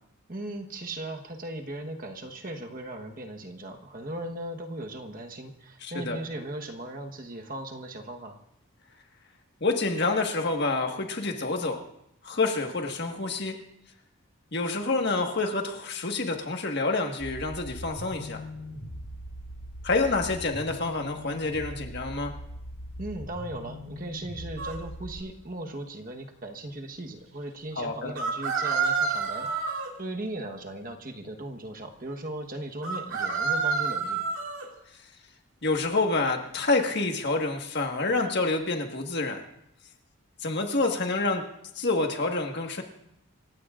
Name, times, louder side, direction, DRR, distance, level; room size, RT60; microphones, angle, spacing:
voice 1, 0.3-8.4 23.0-34.2, right 1 dB, 40° right, 3 dB, 1.2 m, -38 dB
voice 2, 5.8-6.2 9.6-11.8 12.2-13.6 14.5-18.4 19.8-22.3 27.8-28.2 35.6-39.4 40.4-41.5 41.7-42.8, left 3 dB, 50° left, 3 dB, 1.6 m, -28 dB
sound 1, 17.2-25.2, equal, 75° left, 5.5 m, -41 dB
sound 2, 24.6-24.8 28.2-29.9 32.8-34.7, right 5 dB, 60° right, 2.4 m, -28 dB
28.5 x 16.0 x 2.5 m, 0.79 s
head